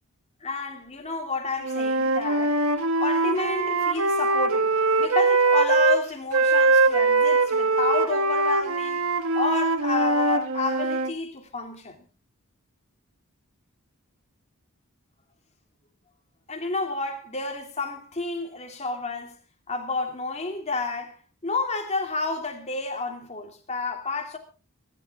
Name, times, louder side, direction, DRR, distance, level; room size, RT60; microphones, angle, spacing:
voice 1, 0.4-9.0 9.3-12.0 16.5-19.4 19.7-24.4, left 3 dB, 30° left, 3.0 m, -30 dB
Wind instrument woodwind instrument, 1.6-6.0 6.3-11.1, right 3 dB, 75° right, 1.4 m, -22 dB
25.0 x 11.5 x 3.7 m
head